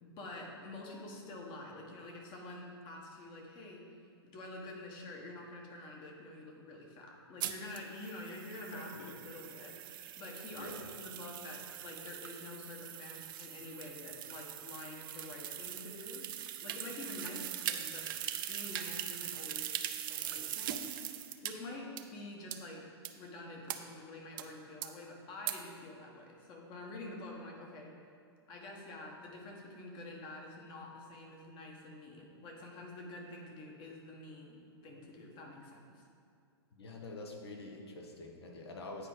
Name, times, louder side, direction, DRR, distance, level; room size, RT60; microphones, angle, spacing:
voice 1, 0.0-3.9 4.2-8.9 9.2-18.1 18.4-19.8 20.1-21.0 21.4-22.9 23.2-28.0 28.5-36.0, left 2 dB, 35° left, 0 dB, 1.3 m, -47 dB
sound 1, 7.4-21.5 22.0-22.1 22.5-22.6 23.0-23.1 23.7-23.8 24.4-24.5 24.8-24.9 25.5-25.6, right 11 dB, 55° right, 0.5 m, -41 dB
voice 2, 8.7-9.2 10.5-10.9 36.7-39.1, left 2 dB, 75° left, 1 dB, 1.2 m, -46 dB
8.8 x 4.7 x 3.9 m, 2.4 s
hypercardioid pair, 115°, 14 cm